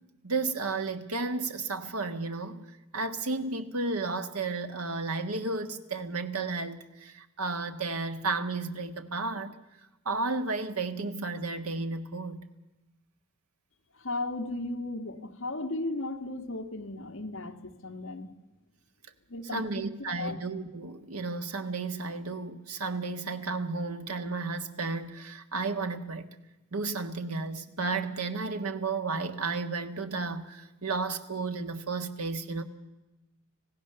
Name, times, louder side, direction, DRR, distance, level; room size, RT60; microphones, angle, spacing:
voice 1, 0.2-2.6 2.9-9.6 10.0-12.4 19.5-26.3 26.7-32.6, right 3 dB, 90° right, 1.5 m, -33 dB
voice 2, 13.9-18.3 19.3-19.8 20.2-20.4, left 2 dB, 65° left, 1.5 m, -35 dB
26.0 x 17.0 x 6.8 m
head